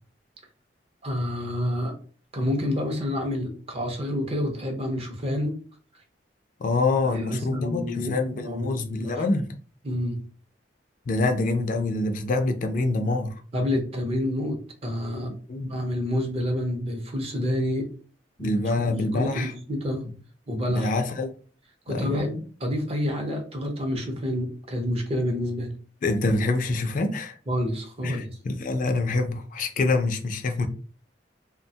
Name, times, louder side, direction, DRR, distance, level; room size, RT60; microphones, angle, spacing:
voice 1, 1.0-2.0 2.3-5.6 7.0-9.2 9.8-10.2 13.5-15.3 15.6-17.9 18.4-20.1 20.5-20.9 21.9-25.7 27.5-28.3, left 1 dB, 35° right, 0.6 m, -28 dB
voice 2, 6.6-9.5 11.1-13.4 15.5-15.7 18.4-19.5 20.7-21.3 21.9-22.3 26.0-27.4 28.0-30.7, left 2 dB, 45° left, 0.4 m, -26 dB
2.8 x 2.2 x 2.7 m
head